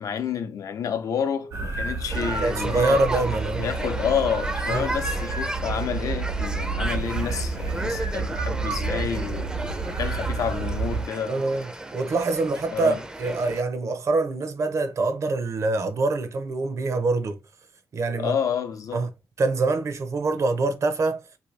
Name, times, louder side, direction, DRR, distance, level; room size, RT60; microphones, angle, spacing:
voice 1, 0.0-3.0 3.5-11.5 12.7-13.0 18.2-19.0, left 7 dB, 75° left, 0.6 m, -29 dB
sound 1, 1.5-11.0, right 4 dB, 80° right, 1.0 m, -29 dB
sound 2, 2.1-13.6, right 1 dB, 15° right, 0.4 m, -34 dB
voice 2, 2.4-3.7 4.7-5.0 11.3-17.4 17.9-18.4 18.9-19.1 19.4-21.2, right 3 dB, 60° right, 0.6 m, -25 dB
2.8 x 2.7 x 3.2 m
cardioid pair, 80°, 6 cm